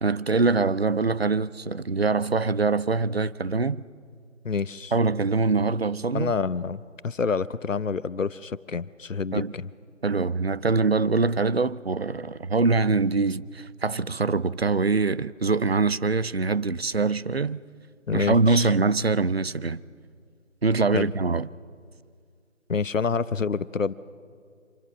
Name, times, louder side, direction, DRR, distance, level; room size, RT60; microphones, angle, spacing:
voice 1, 0.0-3.8 4.9-6.3 9.3-9.5 10.0-17.6 18.1-19.8 20.6-21.5, right 4 dB, 50° right, 0.6 m, -24 dB
voice 2, 4.4-4.9 6.1-9.7 18.1-18.7 20.9-21.1 22.7-23.9, left 5 dB, 75° left, 0.9 m, -28 dB
27.0 x 26.0 x 5.8 m
figure-of-eight pair, 170°, 39 cm